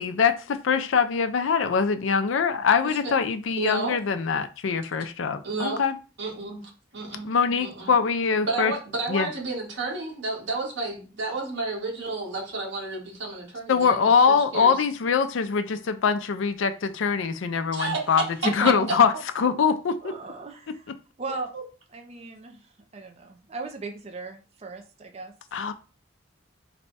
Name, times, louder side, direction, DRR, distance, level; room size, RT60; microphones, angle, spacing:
voice 1, 0.0-6.0 7.2-8.7 9.1-9.3 13.7-20.1 25.5-25.7, left 6 dB, 80° left, 0.4 m, -23 dB
voice 2, 3.6-4.0 5.4-5.8 6.2-6.6 6.9-7.3 7.6-7.9 8.5-14.0 14.5-14.7 17.7-18.0 21.2-21.6, right 3 dB, 70° right, 1.7 m, -31 dB
voice 3, 18.4-18.9 20.0-20.8 21.2-21.5 21.9-25.3, right 3 dB, 35° right, 0.5 m, -37 dB
4.1 x 2.2 x 4.1 m
head